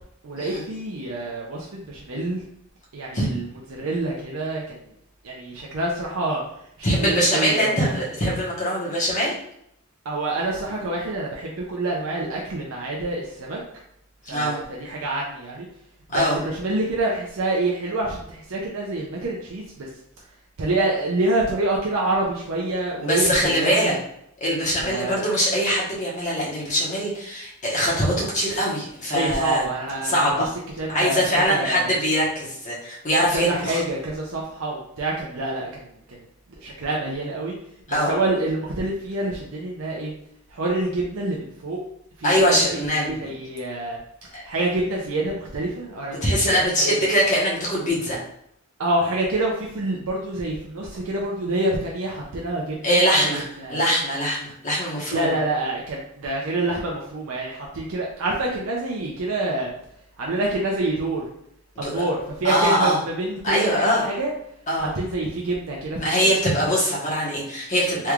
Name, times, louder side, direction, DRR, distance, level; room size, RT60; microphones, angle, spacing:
voice 1, 0.2-2.4 2.9-3.4 3.7-4.8 5.2-6.4 6.8-7.9 10.0-13.6 14.3-15.7 16.1-19.9 20.6-24.0 24.8-25.2 29.1-30.5 30.8-31.9 33.3-36.3 36.6-37.5 37.9-40.1 40.5-41.8 42.2-42.8 43.1-44.0 44.4-47.0 48.8-53.3 53.6-53.9 55.1-59.7 60.2-61.2 61.8-64.3 64.8-66.3, right 2 dB, 70° right, -3 dB, 0.6 m, -27 dB
voice 2, 6.8-9.3 14.2-14.6 16.1-16.4 23.0-23.9 24.4-29.7 30.0-30.5 30.9-33.8 37.9-38.1 42.2-43.3 44.3-44.4 46.1-48.2 52.8-55.3 61.8-62.0 62.4-63.0 63.4-64.0 64.7-64.9 66.0-68.1, equal, 35° left, -5 dB, 1.1 m, -22 dB
3.4 x 3.1 x 2.4 m, 0.73 s
head